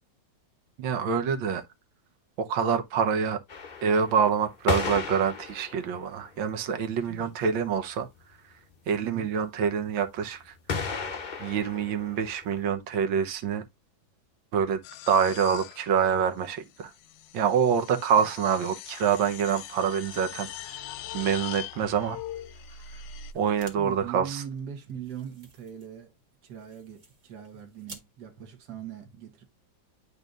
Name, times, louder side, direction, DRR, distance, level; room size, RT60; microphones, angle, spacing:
voice 1, 0.8-1.6 2.4-3.4 3.8-8.1 8.9-10.5 11.4-13.6 14.5-14.8 15.1-16.9 17.3-20.8 21.1-22.2 23.3-24.4, right 7 dB, 80° right, 1.7 m, -26 dB
sound 1, 3.5-6.3 6.9-7.0 7.2-7.3 7.5-7.6 7.9-8.3 10.7-12.6, left 5 dB, 55° left, 0.5 m, -34 dB
sound 2, 14.8-23.3, left 10 dB, 75° left, 1.2 m, -42 dB
sound 3, 23.3-23.8 24.1-24.2 24.5-28.1, right 2 dB, 40° right, 1.9 m, -52 dB
voice 2, 23.8-26.1 26.4-29.4, right 8 dB, 60° right, 1.7 m, -41 dB
11.0 x 4.0 x 2.4 m
omnidirectional pair, 2.1 m